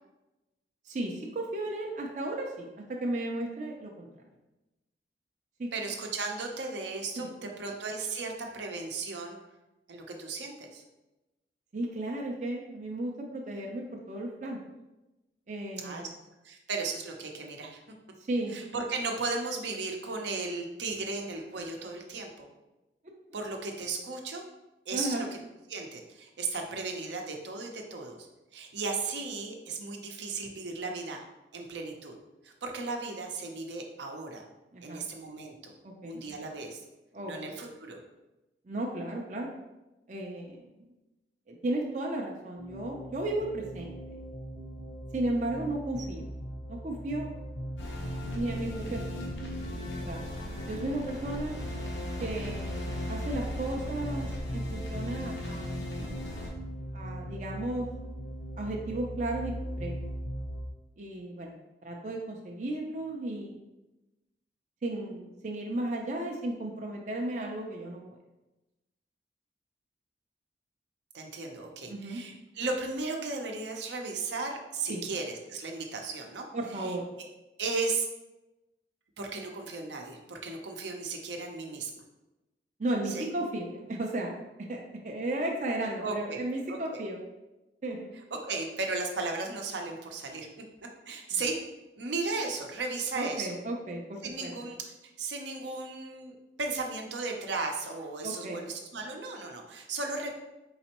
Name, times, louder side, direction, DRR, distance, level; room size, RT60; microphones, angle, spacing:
voice 1, 0.8-4.1 5.6-5.7 7.2-7.3 11.7-14.6 15.5-16.1 18.2-18.5 23.0-23.1 24.9-25.2 34.7-35.1 35.8-36.2 37.1-37.6 38.7-39.5 40.1-40.7 41.5-44.2 45.1-46.3 46.7-47.3 48.3-49.3 50.1-50.3 50.7-51.6 52.2-55.8 56.9-57.9 58.6-59.9 61.0-61.5 61.8-63.6 64.8-68.0 71.9-72.2 74.9-75.0 76.5-77.1 82.8-84.3 84.6-87.2 87.8-88.1 91.3-91.4 93.2-94.5 98.2-98.6, right 1 dB, 40° right, 0 dB, 0.4 m, -34 dB
voice 2, 5.7-9.4 9.9-10.8 15.8-16.1 16.4-17.8 18.5-22.5 23.3-24.4 24.9-25.4 25.7-31.2 31.5-32.2 32.4-34.4 34.8-35.7 36.0-36.8 37.2-38.0 71.1-76.5 76.8-76.9 77.6-78.1 79.2-82.0 83.1-83.3 86.0-86.4 86.7-87.0 88.3-90.5 91.1-91.6 92.0-93.5 94.2-94.8 95.0-100.3, right 3 dB, 80° right, 2 dB, 0.7 m, -35 dB
sound 1, 42.6-60.7, right 1 dB, 50° left, 0.7 m, -39 dB
sound 2, 47.8-56.5, left 2 dB, 90° left, 0.9 m, -40 dB
4.2 x 3.9 x 2.9 m, 1.0 s
head